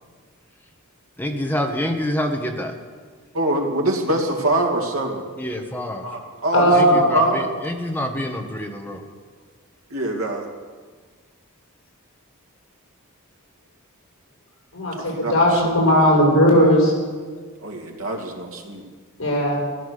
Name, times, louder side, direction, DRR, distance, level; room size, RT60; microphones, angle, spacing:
voice 1, 1.2-2.7 5.4-6.0 6.8-9.0, left 1 dB, 10° left, 3 dB, 1.5 m, -26 dB
voice 2, 3.3-5.2 6.0-7.5 9.9-10.5 15.0-15.9 17.6-18.8, right 1 dB, 85° right, 2 dB, 2.4 m, -24 dB
voice 3, 6.5-7.3 14.7-16.9 19.2-19.6, equal, 65° left, -3 dB, 6.2 m, -17 dB
14.0 x 13.5 x 6.7 m, 1.5 s
head